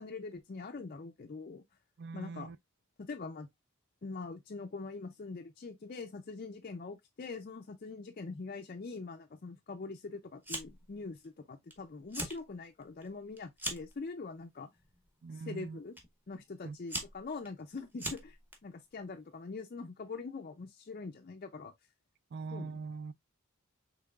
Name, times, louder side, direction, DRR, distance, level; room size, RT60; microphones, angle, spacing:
voice 1, 0.0-1.6 2.1-2.5 3.0-3.5 4.0-14.7 15.5-15.9 16.3-21.7 22.5-22.8, left 4 dB, 40° left, 0.4 m, -43 dB
voice 2, 2.0-2.6 15.2-15.8 16.6-16.8 22.3-23.1, right 4 dB, 50° right, 0.3 m, -42 dB
Fire, 10.4-10.9 11.2-11.7 12.0-12.4 12.8-14.0 14.8-15.1 16.0-16.1 16.6-18.6, right 1 dB, 10° right, 0.9 m, -40 dB
5.7 x 3.5 x 2.3 m
head